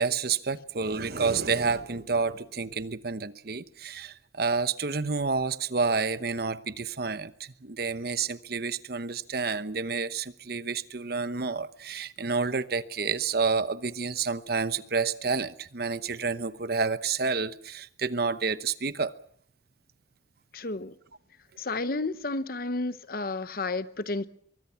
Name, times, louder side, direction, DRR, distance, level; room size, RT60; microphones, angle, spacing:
voice 1, 0.0-19.1, right 4 dB, 55° right, 1.0 m, -29 dB
voice 2, 20.5-20.9 21.6-24.3, left 3 dB, 55° left, 1.0 m, -31 dB
23.5 x 23.0 x 5.8 m
head